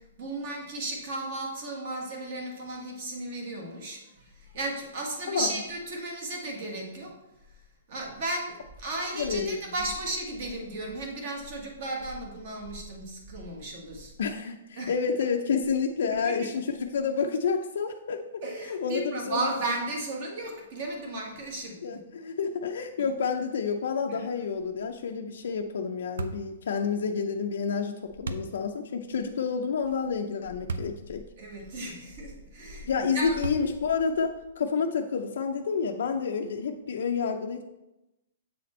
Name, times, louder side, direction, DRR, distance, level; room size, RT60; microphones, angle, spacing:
voice 1, 0.0-7.2 7.9-14.1 14.8-14.9 16.2-16.4 18.4-21.8 24.1-24.2 31.4-33.4, right 2 dB, 35° right, 1 dB, 1.4 m, -35 dB
voice 2, 9.2-9.6 14.2-18.2 18.6-19.0 19.3-19.7 21.8-31.2 32.9-37.6, left 5 dB, 60° left, 3 dB, 0.5 m, -29 dB
sound 1, 26.2-26.5 28.2-28.5 30.7-31.0 31.6-31.7 33.4-33.9, right 4 dB, 90° right, 0.6 m, -34 dB
7.6 x 4.2 x 4.2 m, 0.95 s
hypercardioid pair, 175°, 0 cm